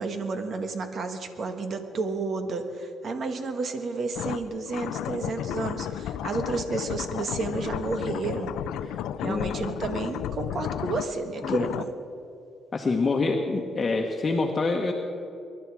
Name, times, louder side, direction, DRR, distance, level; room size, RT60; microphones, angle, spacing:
voice 1, 0.0-8.5 9.2-11.9, right 3 dB, 55° right, 7 dB, 1.6 m, -31 dB
sound 1, 4.1-11.8, left 11 dB, 85° left, 0.5 m, -33 dB
voice 2, 9.2-9.6 11.4-11.7 12.7-14.9, left 3 dB, 30° left, 1 dB, 1.3 m, -26 dB
23.0 x 11.5 x 4.9 m, 2.6 s
cardioid pair, 90°, 0 cm